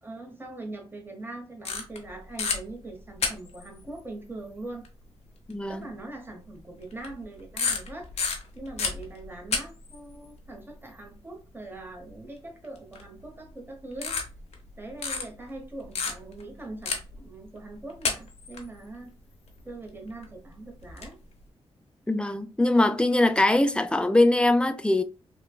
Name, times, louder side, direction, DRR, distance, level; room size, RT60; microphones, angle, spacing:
voice 1, 0.0-4.9 5.7-8.1 8.5-14.2 14.8-19.1 19.6-21.2, right 2 dB, 20° right, 0.9 m, -42 dB
sound 1, 1.6-2.1 2.4-2.6 3.2-3.7 4.8-4.9 5.5-5.6 6.9-7.2 7.6-9.6 9.8-10.0 12.9-13.2 14.0-14.7 15.0-15.2 15.9-16.4 16.8-17.2 17.9-18.6 20.2-20.3 20.8-21.1, left 5 dB, 75° left, 0.7 m, -29 dB
voice 2, 5.5-5.9 22.1-25.0, left 2 dB, 10° left, 0.3 m, -22 dB
3.1 x 2.2 x 2.3 m
cardioid pair, 70°, 11 cm